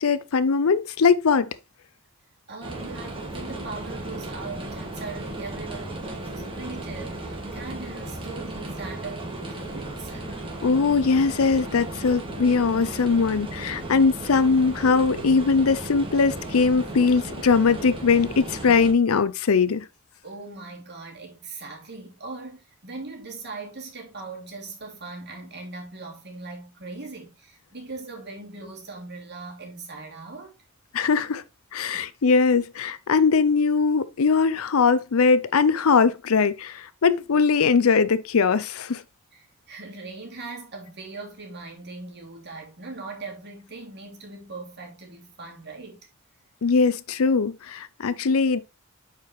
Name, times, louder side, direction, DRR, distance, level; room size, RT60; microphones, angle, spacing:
voice 1, 0.0-1.5 10.6-19.8 30.9-31.4 31.7-39.0 46.6-48.6, left 5 dB, 85° left, 0.6 m, -21 dB
voice 2, 2.5-10.2 20.2-30.5 31.9-32.1 39.3-46.0, right 3 dB, 55° right, 2.8 m, -40 dB
sound 1, 2.6-18.9, right 2 dB, 25° right, 1.7 m, -35 dB
sound 2, 13.5-13.9 14.8-15.5 16.2-16.9, left 2 dB, 5° left, 2.7 m, -48 dB
8.4 x 4.8 x 3.2 m
head